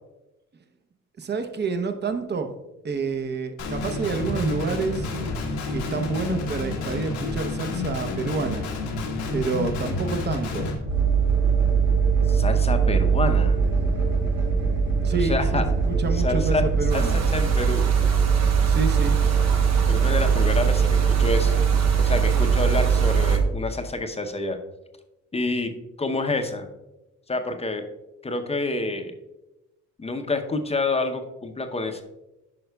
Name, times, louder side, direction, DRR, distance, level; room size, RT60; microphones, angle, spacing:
voice 1, 1.2-2.5 2.8-5.1 5.7-8.7 9.3-10.7 15.0-17.2 18.7-19.2, right 4 dB, 35° right, 6 dB, 0.8 m, -28 dB
Guitar, 3.6-10.7, left 3 dB, 90° left, 1.3 m, -29 dB
sound 1, 10.9-23.4, right 6 dB, 75° right, 2.0 m, -21 dB
voice 2, 12.3-13.6 15.2-15.6 16.2-16.6 16.9-17.1 17.3-17.9 19.9-21.6 22.0-24.6 25.3-25.7 26.0-26.7 27.3-27.8 28.2-29.1 30.0-32.0, left 3 dB, 20° left, 6 dB, 0.7 m, -27 dB
sound 2, 16.9-23.4, right 5 dB, 60° right, 1.0 m, -35 dB
9.2 x 5.5 x 2.3 m, 0.98 s
cardioid pair, 90°, 30 cm